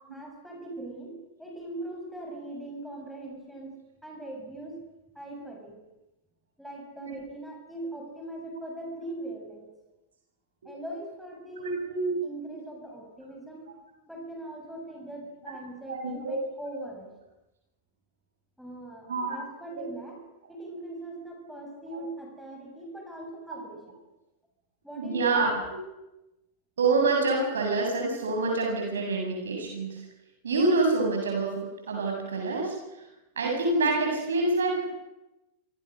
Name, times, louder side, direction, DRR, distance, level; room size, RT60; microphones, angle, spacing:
voice 1, 0.1-4.9 5.2-5.8 6.6-9.7 10.6-11.9 12.2-13.7 14.1-17.1 18.6-20.2 20.5-24.0 24.8-25.4, right 1 dB, ahead, -1 dB, 7.0 m, -41 dB
voice 2, 11.6-12.1 15.9-16.3 19.1-19.4 19.7-19.8 21.9-22.0 23.5-23.6 25.0-25.8 26.8-30.0 30.4-32.8 33.4-34.9, right 3 dB, 65° right, 1 dB, 7.7 m, -27 dB
28.5 x 26.0 x 6.6 m, 0.97 s
figure-of-eight pair, 90°, 0 cm